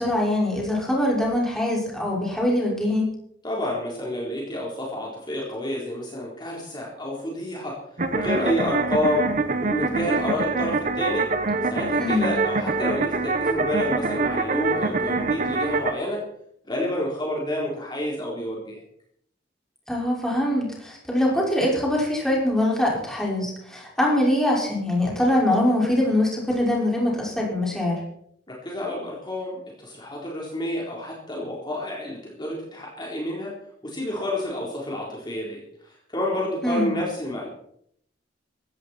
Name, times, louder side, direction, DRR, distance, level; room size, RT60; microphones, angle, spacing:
voice 1, 0.0-3.1 12.0-12.3 19.9-28.0 36.6-36.9, left 1 dB, 5° left, -3 dB, 5.7 m, -23 dB
voice 2, 3.4-7.8 8.1-9.3 9.6-11.3 11.6-16.2 16.7-18.8 28.5-33.5 33.8-37.5, left 1 dB, 25° left, -3 dB, 4.1 m, -29 dB
sound 1, 8.0-15.9, right 3 dB, 45° right, 1.4 m, -25 dB
17.5 x 15.0 x 4.5 m, 0.70 s
head